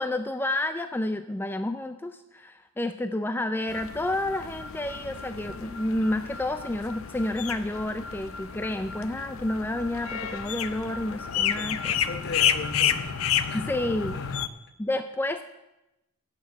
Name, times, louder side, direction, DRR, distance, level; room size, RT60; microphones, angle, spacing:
voice 1, 0.0-11.9 13.5-14.2 14.8-15.4, left 1 dB, 10° left, 0.4 m, -30 dB
sound 1, 3.7-14.5, left 8 dB, 70° left, 0.6 m, -31 dB
voice 2, 11.6-13.8 14.1-14.4, left 3 dB, 50° left, 1.0 m, -39 dB
13.0 x 6.1 x 8.3 m
head